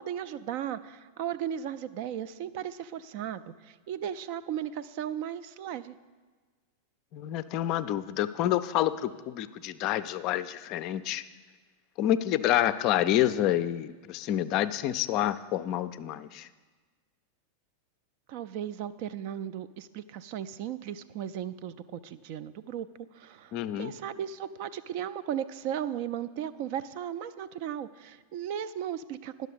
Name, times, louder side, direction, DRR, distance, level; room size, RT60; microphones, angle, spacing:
voice 1, 0.0-6.0 18.3-22.9 23.1-29.5, right 9 dB, 45° right, 15 dB, 0.4 m, -36 dB
voice 2, 7.1-11.2 12.0-16.5 23.5-23.9, left 12 dB, 40° left, 13 dB, 0.4 m, -28 dB
10.5 x 6.3 x 6.7 m, 1.4 s
figure-of-eight pair, 90°, 0 cm